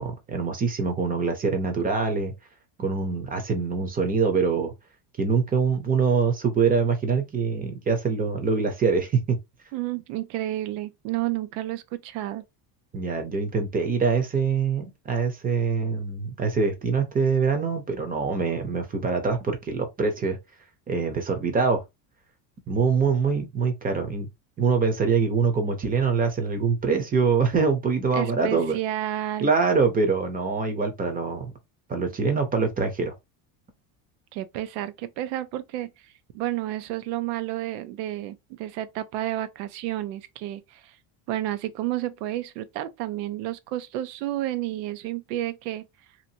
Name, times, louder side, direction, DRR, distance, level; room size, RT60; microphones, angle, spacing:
voice 1, 0.0-2.3 2.8-4.7 5.2-9.4 12.9-20.4 20.9-21.8 22.7-24.3 24.6-28.8 29.4-31.5 31.9-33.1, right 5 dB, 20° right, 0.6 m, -24 dB
voice 2, 9.7-12.4 28.1-29.5 34.3-41.0 41.3-45.9, right 14 dB, 85° right, 0.6 m, -31 dB
2.9 x 2.5 x 2.7 m
cardioid pair, 140°, 47 cm